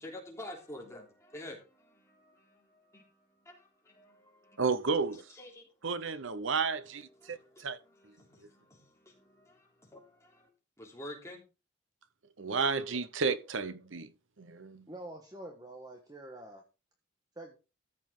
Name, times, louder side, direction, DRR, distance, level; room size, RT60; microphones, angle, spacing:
voice 1, 0.0-4.6 5.1-5.7 7.0-10.5 10.8-11.4, left 1 dB, 15° left, 3.2 m, -49 dB
voice 2, 4.6-5.2 5.8-7.8 8.0-8.1 12.4-14.1 14.4-14.9, right 4 dB, 80° right, 0.9 m, -32 dB
voice 3, 14.9-16.6 17.3-17.6, right 1 dB, 20° right, 1.4 m, -46 dB
14.0 x 7.5 x 3.8 m
head